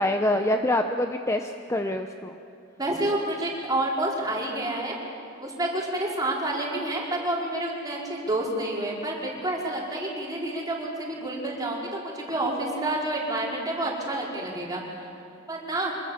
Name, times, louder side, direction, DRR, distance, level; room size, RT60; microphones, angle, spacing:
voice 1, 0.0-2.4, left 1 dB, 15° left, 5 dB, 0.7 m, -25 dB
voice 2, 2.8-5.0 5.4-15.1 15.5-15.9, right 1 dB, 20° right, -4 dB, 4.8 m, -29 dB
25.5 x 21.0 x 7.4 m, 2.8 s
head